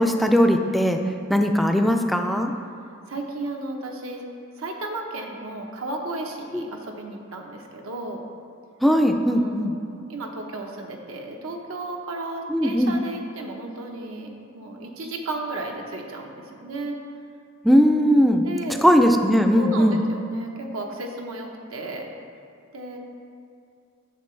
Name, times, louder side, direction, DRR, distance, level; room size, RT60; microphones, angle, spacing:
voice 1, 0.0-1.0 1.3-2.5 6.5-6.6 8.8-9.7 12.5-13.0 17.6-18.5 18.8-20.0, equal, ahead, 4 dB, 0.3 m, -19 dB
voice 2, 3.1-4.2 4.6-8.2 9.3-17.0 18.4-18.8 19.5-22.1 22.7-23.0, right 2 dB, 85° right, 1 dB, 0.9 m, -34 dB
9.2 x 6.7 x 3.2 m, 2.4 s
head